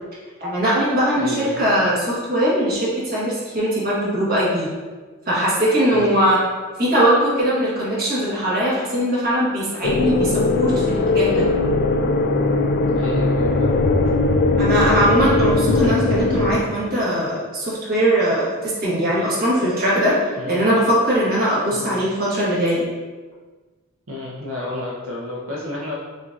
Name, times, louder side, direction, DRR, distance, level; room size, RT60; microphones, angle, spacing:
voice 1, 0.4-4.7 5.3-6.4 6.8-11.5 14.6-22.9, equal, 45° right, -7 dB, 1.3 m, -20 dB
voice 2, 1.1-1.7 5.9-6.2 12.9-13.7 19.1-19.2 20.4-20.7 21.7-22.1 24.1-25.9, left 1 dB, 90° right, -4 dB, 0.7 m, -31 dB
sound 1, 9.8-16.6, left 2 dB, 45° left, 0.3 m, -19 dB
5.7 x 2.8 x 2.5 m, 1.3 s
head